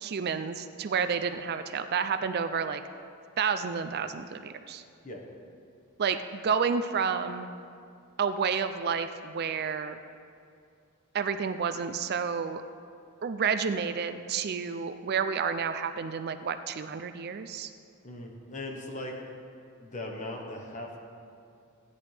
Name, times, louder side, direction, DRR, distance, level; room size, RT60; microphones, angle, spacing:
voice 1, 0.0-2.8 3.4-4.8 6.0-7.5 8.2-10.0 11.1-12.6 13.2-17.7, right 6 dB, 45° right, 10 dB, 0.4 m, -30 dB
voice 2, 18.0-19.2 19.8-21.0, left 1 dB, 35° left, 1 dB, 1.3 m, -39 dB
16.0 x 9.9 x 3.4 m, 2.4 s
head